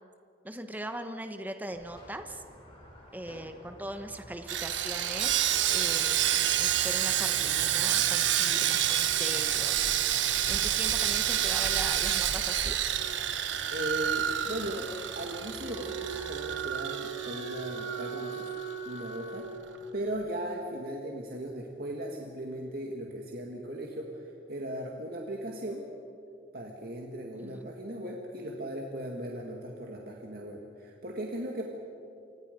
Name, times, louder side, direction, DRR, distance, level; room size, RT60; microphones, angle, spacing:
voice 1, 0.4-2.4 3.1-12.8 27.4-27.7, right 1 dB, 10° right, 7 dB, 1.2 m, -40 dB
Squeak, 1.7-16.6, equal, 30° left, 6.7 m, -50 dB
Sawing, 4.5-18.7 19.0-19.2 19.6-19.8, right 11 dB, 90° right, 1.1 m, -29 dB
voice 2, 13.7-18.5 18.9-19.5 19.9-24.2 24.5-25.9 26.5-31.7, right 1 dB, 55° right, 0 dB, 2.0 m, -37 dB
Wind instrument woodwind instrument, 15.6-20.1, right 6 dB, 75° left, 2.0 m, -39 dB
28.5 x 25.0 x 5.3 m, 2.6 s
head